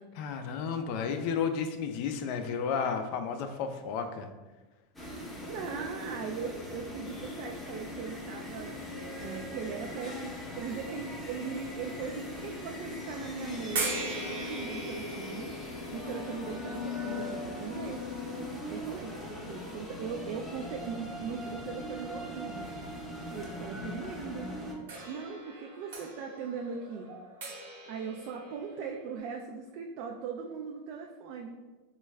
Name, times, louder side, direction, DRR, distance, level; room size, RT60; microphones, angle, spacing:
voice 1, 0.2-4.3, left 6 dB, 55° left, 7 dB, 0.3 m, -32 dB
sound 1, 5.0-24.7, left 2 dB, 10° left, 0.7 m, -40 dB
voice 2, 5.4-8.7 9.2-18.0 18.7-22.7 23.3-24.5 25.1-27.1 27.9-31.6, right 6 dB, 55° right, 1 dB, 0.3 m, -39 dB
sound 2, 13.8-18.8 19.7-19.8 24.9-29.2, right 3 dB, 85° right, 1.0 m, -40 dB
3.3 x 2.2 x 3.2 m, 1.2 s
supercardioid pair, 140°, 0 cm